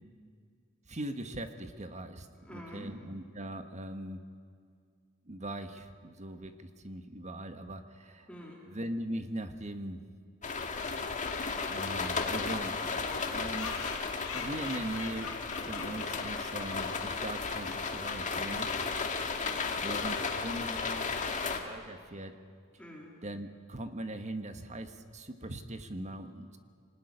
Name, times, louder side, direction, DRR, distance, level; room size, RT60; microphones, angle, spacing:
voice 1, 0.9-2.3 2.5-4.2 5.3-8.3 8.7-10.0 11.7-12.7 13.3-13.7 14.3-18.7 19.8-22.4 23.2-26.6, right 1 dB, 35° right, 8 dB, 1.4 m, -40 dB
voice 2, 2.4-3.0 8.3-8.7 12.9-13.3 15.6-15.9 19.4-19.8 22.8-23.2, equal, 5° left, -2 dB, 3.8 m, -47 dB
sound 1, 10.4-21.6, left 4 dB, 35° left, 2.1 m, -34 dB
sound 2, 13.4-17.3, left 5 dB, 85° left, 5.0 m, -44 dB
25.0 x 19.5 x 9.9 m, 2.1 s
head